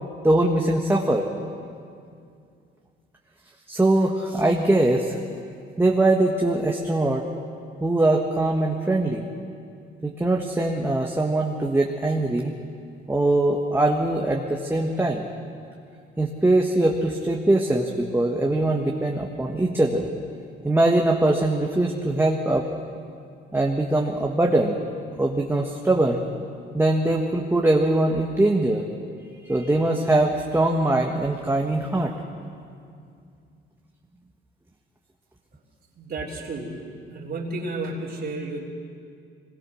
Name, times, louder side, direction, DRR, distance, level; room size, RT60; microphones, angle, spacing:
voice 1, 0.2-1.3 3.7-5.2 5.8-7.3 7.8-9.3 10.0-12.5 13.1-15.3 16.2-20.1 20.6-22.7 23.5-24.8 25.2-26.2 26.7-28.8 29.4-32.1, right 2 dB, 10° right, 0 dB, 1.6 m, -22 dB
voice 2, 36.0-38.7, right 2 dB, 55° right, -4 dB, 3.5 m, -32 dB
23.0 x 21.0 x 6.4 m, 2.4 s
cardioid pair, 90°, 20 cm